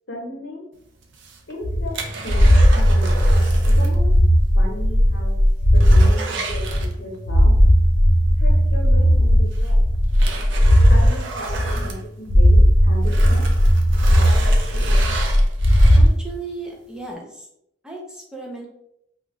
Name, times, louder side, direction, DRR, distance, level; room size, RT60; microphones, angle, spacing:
voice 1, 0.1-0.6 1.5-3.2 3.8-4.1 4.5-5.3 5.7-7.5 8.4-9.8 10.9-13.5, left 1 dB, 75° left, -1 dB, 0.9 m, -35 dB
sound 1, 1.0-4.0 4.3-4.4 4.9-5.0 5.3-7.3 8.8-8.9 9.5-12.6 13.0-16.3 16.8-16.9, right 3 dB, 75° right, 0.4 m, -32 dB
sound 2, 1.6-6.1 6.5-11.1 11.5-12.0 12.3-16.1, equal, 50° left, 0.5 m, -15 dB
voice 2, 16.0-17.5 17.8-18.7, right 3 dB, 5° right, -2 dB, 0.5 m, -35 dB
2.4 x 2.4 x 3.0 m, 0.75 s
head